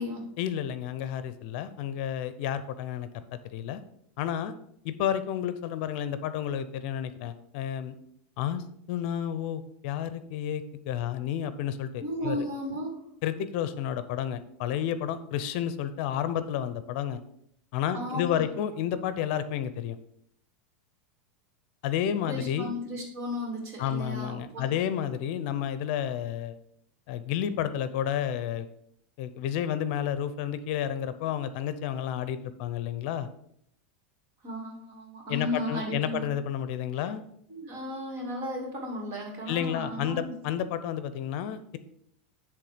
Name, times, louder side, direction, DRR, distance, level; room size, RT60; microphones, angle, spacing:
voice 1, 0.4-3.8 4.2-4.5 4.8-7.9 8.4-12.5 13.2-17.2 17.7-20.0 21.8-22.7 23.8-26.6 27.1-28.7 29.2-33.3 35.3-37.2 39.5-41.8, left 10 dB, 55° left, 12 dB, 0.6 m, -31 dB
voice 2, 12.0-13.0 17.9-18.4 22.2-24.7 34.4-36.3 36.9-37.0 37.5-40.4, left 1 dB, 45° right, 0 dB, 2.7 m, -35 dB
10.5 x 3.6 x 5.0 m, 0.72 s
supercardioid pair, 135°, 7 cm